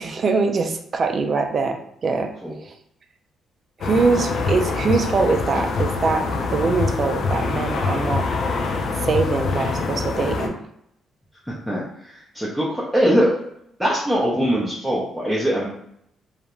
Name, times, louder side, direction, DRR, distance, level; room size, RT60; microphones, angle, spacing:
voice 1, 0.0-2.3 2.6-2.7 3.8-6.3 6.5-8.3 9.0-10.6, right 4 dB, 45° right, 6 dB, 0.3 m, -23 dB
sound 1, 3.8-10.5, left 4 dB, 60° left, 0.4 m, -24 dB
voice 2, 11.4-13.3 13.8-15.7, equal, ahead, -6 dB, 0.6 m, -22 dB
2.4 x 2.1 x 2.9 m, 0.74 s
cardioid pair, 90°, 0 cm